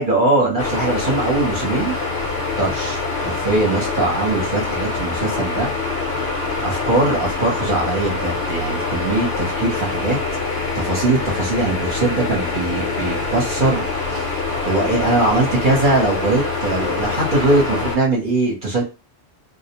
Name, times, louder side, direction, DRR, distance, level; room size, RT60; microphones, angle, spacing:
voice 1, 0.0-2.0 2.6-5.7 6.6-10.2 10.7-14.3 14.6-18.8, right 2 dB, 50° right, -2 dB, 0.9 m, -21 dB
sound 1, 0.6-18.0, left 3 dB, 55° left, 0.8 m, -24 dB
2.3 x 2.1 x 2.9 m, 0.28 s
omnidirectional pair, 1.2 m